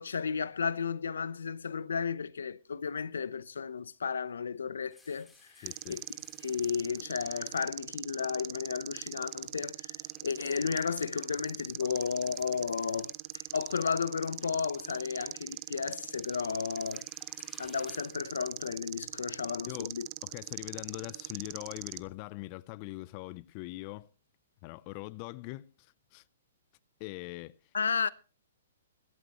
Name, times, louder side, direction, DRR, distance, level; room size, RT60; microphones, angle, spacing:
voice 1, 0.0-5.3 5.6-6.0 6.4-9.9 10.2-17.1 17.6-20.1 27.7-28.1, left 6 dB, 80° left, 0.8 m, -33 dB
sound 1, 4.9-8.0 8.6-8.7 9.0-22.2, left 3 dB, 5° left, 3.6 m, -63 dB
voice 2, 5.6-6.0 19.7-19.9 20.2-24.1 24.6-26.2 27.0-27.6, left 20 dB, 40° left, 0.6 m, -42 dB
sound 2, 5.7-22.0, right 22 dB, 40° right, 0.6 m, -42 dB
16.5 x 15.5 x 3.1 m
hypercardioid pair, 130°, 0 cm